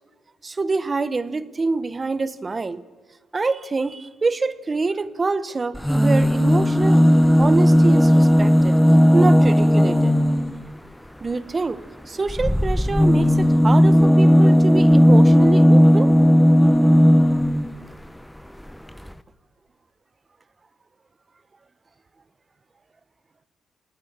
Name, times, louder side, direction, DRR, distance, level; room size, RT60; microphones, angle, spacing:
voice 1, 0.4-2.8 3.3-7.0 7.4-8.8 9.1-10.1 11.2-16.1, right 3 dB, 30° right, 15 dB, 1.1 m, -25 dB
sound 1, 5.7-10.6 12.3-17.7 18.7-18.8 19.0-19.1, equal, 5° left, 0.8 m, -15 dB
26.5 x 19.0 x 7.3 m, 1.3 s
cardioid pair, 90°, 0 cm